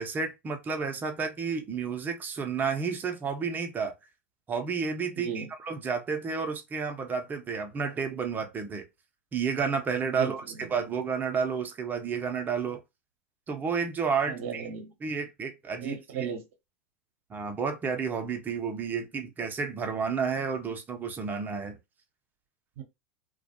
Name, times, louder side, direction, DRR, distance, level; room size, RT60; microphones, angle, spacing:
voice 1, 0.0-3.9 4.5-8.8 9.3-12.8 13.5-14.7 15.0-16.0 17.3-21.8, right 5 dB, 25° right, 0.6 m, -31 dB
voice 2, 5.2-5.5 10.1-10.7 14.3-14.9 15.8-16.4 22.8-22.9, right 7 dB, 65° right, 0.7 m, -35 dB
2.3 x 2.2 x 2.7 m
hypercardioid pair, 95°, 8 cm